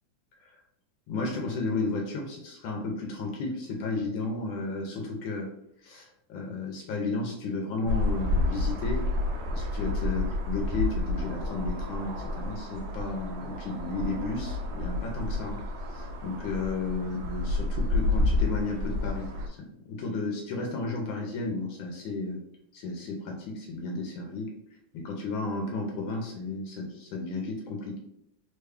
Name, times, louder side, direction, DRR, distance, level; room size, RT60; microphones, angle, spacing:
voice 1, 1.1-5.5 5.8-9.0 9.5-15.6 15.9-22.4 22.7-24.5 24.9-28.0, left 3 dB, 75° left, 1 dB, 1.3 m, -33 dB
sound 1, 7.9-19.5, left 2 dB, 75° right, 1.3 m, -30 dB
3.6 x 2.2 x 3.3 m, 0.74 s
omnidirectional pair, 2.4 m